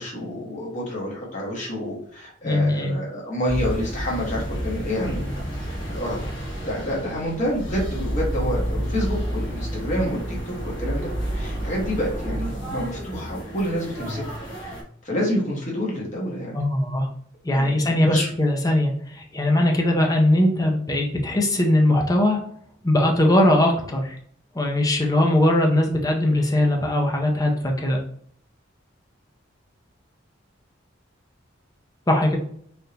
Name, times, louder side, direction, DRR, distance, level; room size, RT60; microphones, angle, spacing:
voice 1, 0.0-5.3 5.7-6.2 6.6-14.2 15.0-16.6 17.5-18.3, equal, 40° left, -4 dB, 1.0 m, -28 dB
voice 2, 2.4-2.9 16.5-17.1 17.4-22.4 22.8-24.2 24.5-28.0 32.1-32.4, left 1 dB, 20° left, 1 dB, 0.6 m, -20 dB
sound 1, 3.4-14.8, equal, 70° left, 1.0 m, -30 dB
3.4 x 2.5 x 2.8 m, 0.63 s
head